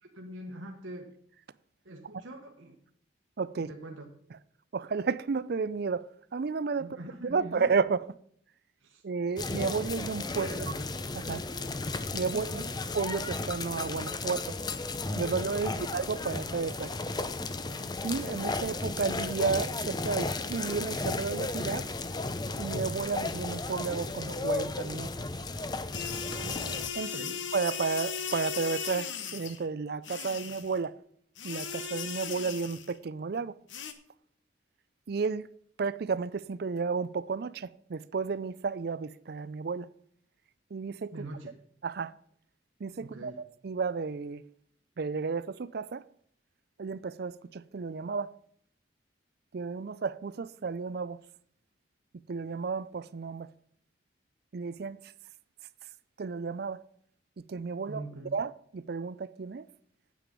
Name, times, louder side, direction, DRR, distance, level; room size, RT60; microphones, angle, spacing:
voice 1, 0.0-1.1 1.8-2.8 3.7-4.1 6.8-7.7 8.8-9.0 10.3-10.9 12.3-12.7 15.6-15.9 27.0-27.4 41.1-41.5 43.0-43.4 57.9-58.4, right 1 dB, 90° right, 1.3 m, -43 dB
voice 2, 3.4-3.7 4.7-6.1 6.3-6.9 7.2-8.0 9.0-10.5 11.1-11.4 12.1-12.5 12.9-14.6 15.2-16.9 18.0-21.9 22.6-25.1 26.9-27.1 27.5-30.9 31.4-33.5 35.1-35.5 35.8-39.9 40.7-41.1 41.8-42.1 42.8-43.3 43.6-44.4 45.0-46.0 46.8-48.3 49.5-51.2 52.3-53.5 54.5-55.0 56.2-56.8 57.5-58.0 58.3-59.7, right 5 dB, 55° right, 0.4 m, -32 dB
sound 1, 9.4-26.9, left 3 dB, 20° left, 0.5 m, -34 dB
sound 2, 25.9-29.6 30.0-30.8 31.4-33.0 33.7-33.9, left 6 dB, 75° left, 1.1 m, -37 dB
9.1 x 8.5 x 5.2 m
head